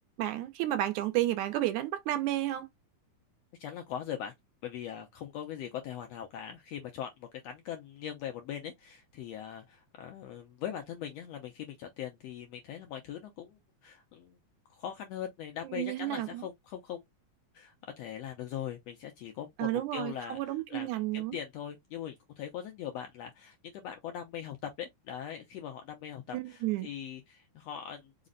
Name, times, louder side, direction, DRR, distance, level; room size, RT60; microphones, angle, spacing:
voice 1, 0.2-2.7 15.6-16.4 19.6-21.4 26.3-26.9, right 14 dB, 80° right, 2.0 m, -31 dB
voice 2, 3.6-4.3 4.6-14.4 14.7-17.0 17.5-28.3, left 9 dB, 80° left, 1.5 m, -41 dB
5.0 x 2.1 x 3.8 m
omnidirectional pair, 3.6 m